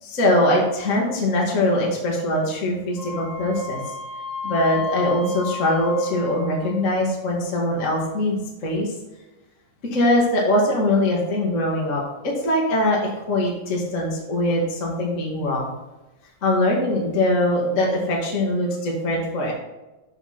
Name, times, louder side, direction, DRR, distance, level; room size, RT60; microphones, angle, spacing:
voice 1, 0.0-3.8 4.4-8.9 9.9-15.7 16.4-19.5, left 1 dB, 35° left, -3 dB, 1.3 m, -22 dB
Wind instrument woodwind instrument, 3.0-6.9, left 5 dB, 25° right, 2.6 m, -33 dB
7.8 x 7.2 x 4.3 m, 1.1 s
omnidirectional pair, 4.0 m